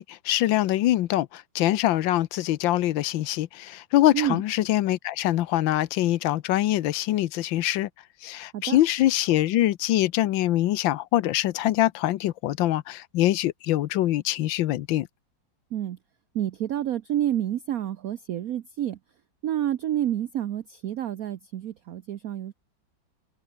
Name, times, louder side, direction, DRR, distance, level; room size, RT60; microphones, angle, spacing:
voice 1, 0.0-7.9 8.2-15.1, left 14 dB, 85° left, 1.5 m, -24 dB
voice 2, 16.3-19.0 19.4-22.5, right 11 dB, 60° right, 1.1 m, -29 dB
omnidirectional pair, 2.0 m